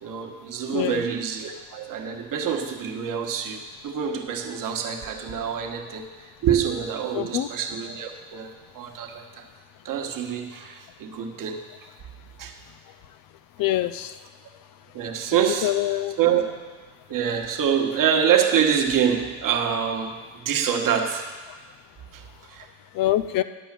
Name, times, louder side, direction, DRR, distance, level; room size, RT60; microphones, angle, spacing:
voice 1, 0.0-9.4 9.8-11.6 12.4-12.5 14.9-15.7 16.2-16.4 17.1-21.3 22.1-22.7, right 8 dB, 50° right, 3 dB, 1.4 m, -26 dB
voice 2, 0.7-1.0 7.1-7.5 13.6-14.2 15.6-16.2 22.9-23.4, left 14 dB, 50° left, 12 dB, 0.5 m, -24 dB
11.0 x 5.4 x 7.5 m, 1.4 s
supercardioid pair, 100°, 43 cm